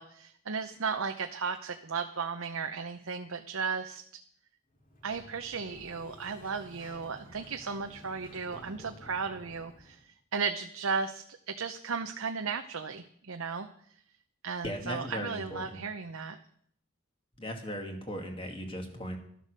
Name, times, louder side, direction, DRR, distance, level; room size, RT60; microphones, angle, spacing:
voice 1, 0.0-4.0 5.0-13.7 14.4-16.4, right 5 dB, 80° right, 6 dB, 0.8 m, -35 dB
Sliding door, 4.7-10.1, left 1 dB, 40° left, 2.6 m, -52 dB
voice 2, 14.6-15.8 17.4-19.2, equal, 25° left, 4 dB, 2.1 m, -38 dB
13.0 x 11.0 x 6.7 m, 0.65 s
head